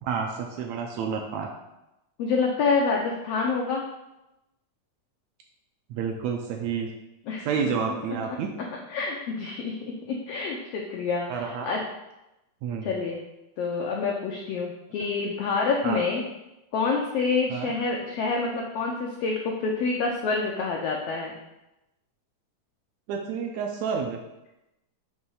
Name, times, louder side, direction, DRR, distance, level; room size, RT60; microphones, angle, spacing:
voice 1, 0.0-1.5 5.9-6.9 7.4-8.5 11.3-11.7 12.6-12.9 15.8-16.0 17.5-17.7 23.1-24.2, right 6 dB, 80° right, 2 dB, 1.7 m, -29 dB
voice 2, 2.2-3.8 7.3-7.5 8.1-8.2 8.7-11.8 12.8-13.2 13.6-16.2 16.7-21.4, left 4 dB, 85° left, 0 dB, 1.4 m, -27 dB
6.0 x 3.2 x 5.4 m, 0.94 s
omnidirectional pair, 3.6 m